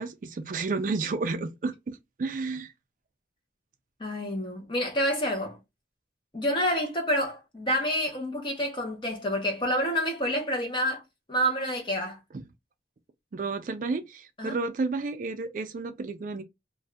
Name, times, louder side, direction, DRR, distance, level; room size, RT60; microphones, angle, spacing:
voice 1, 0.0-2.7 12.3-12.5 13.3-16.4, right 3 dB, 45° right, 0.3 m, -31 dB
voice 2, 4.0-5.6 6.3-11.0 11.3-12.2 14.4-14.5, equal, 25° left, 0.9 m, -28 dB
2.5 x 2.4 x 3.2 m
head